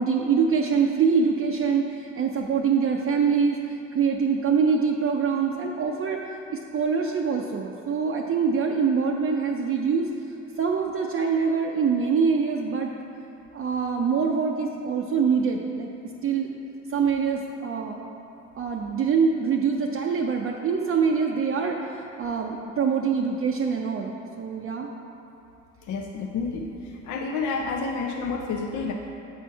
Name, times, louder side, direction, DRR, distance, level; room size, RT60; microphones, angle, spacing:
voice 1, 0.0-6.2 6.5-10.1 10.6-12.9 13.5-15.9 16.2-16.5 16.9-18.0 18.6-21.8 22.2-24.9, right 6 dB, 45° right, 0 dB, 0.5 m, -24 dB
voice 2, 25.9-28.9, left 4 dB, 80° left, 2 dB, 0.5 m, -29 dB
7.2 x 4.4 x 4.6 m, 2.8 s
cardioid pair, 90°, 30 cm